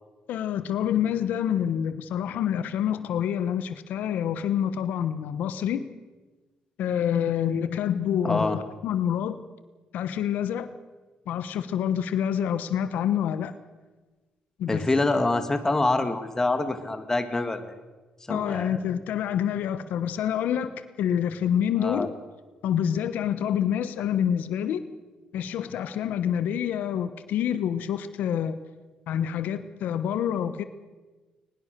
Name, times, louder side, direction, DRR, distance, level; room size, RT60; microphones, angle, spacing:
voice 1, 0.3-5.9 6.8-9.4 9.9-10.7 11.3-13.5 14.6-14.9 18.3-22.1 22.6-24.8 25.3-28.6 29.1-30.6, left 9 dB, 85° left, 12 dB, 1.1 m, -27 dB
voice 2, 8.2-8.6 14.7-17.7 18.3-18.8 21.8-22.1, left 2 dB, 20° left, 9 dB, 2.0 m, -25 dB
22.0 x 20.5 x 6.8 m, 1.3 s
cardioid pair, 110°, 3 cm